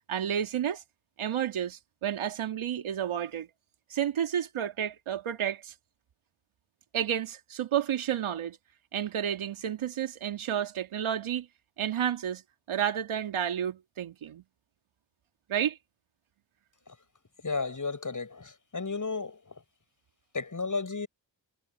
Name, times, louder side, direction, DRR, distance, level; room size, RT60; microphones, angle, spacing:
voice 1, 0.1-0.8 1.2-3.5 3.9-5.7 6.9-8.6 8.9-11.5 11.8-12.4 12.7-14.4 15.5-15.8, right 9 dB, 75° right, 2.5 m, -31 dB
voice 2, 17.4-19.4 20.3-21.1, left 4 dB, 40° left, 7.9 m, -33 dB
supercardioid pair, 40°, 49 cm